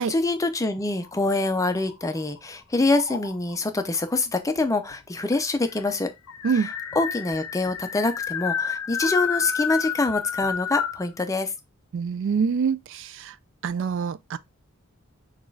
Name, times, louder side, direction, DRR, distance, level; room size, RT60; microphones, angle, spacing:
voice 1, 0.0-6.1 7.0-11.5, left 2 dB, 15° left, 0.5 m, -25 dB
sound 1, 0.9-2.4 2.9-3.6 4.6-4.7 4.9-5.0 5.3-11.1, left 7 dB, 70° left, 0.5 m, -30 dB
voice 2, 11.9-13.3 13.6-14.4, right 6 dB, 60° right, 0.3 m, -25 dB
6.3 x 2.4 x 3.1 m
head